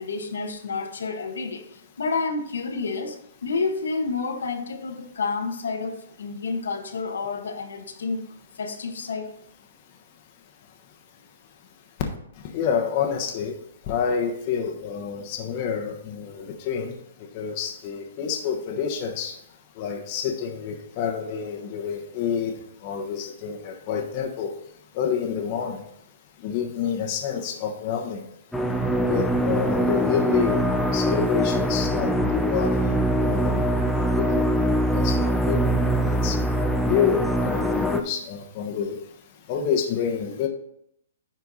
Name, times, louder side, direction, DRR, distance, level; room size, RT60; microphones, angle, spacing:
voice 1, 0.0-8.2 8.6-9.3, left 4 dB, 90° left, 4 dB, 1.2 m, -29 dB
voice 2, 12.5-13.5 13.9-16.9 17.3-19.3 19.8-22.5 22.8-24.5 24.9-25.8 26.4-28.2 29.1-30.7 30.9-33.7 34.1-36.4 36.8-39.0 39.5-40.5, left 7 dB, 35° left, 2 dB, 1.2 m, -28 dB
sound 1, 28.5-38.0, right 1 dB, 5° left, 0.5 m, -23 dB
9.7 x 4.5 x 4.1 m, 0.74 s
hypercardioid pair, 155°, 0 cm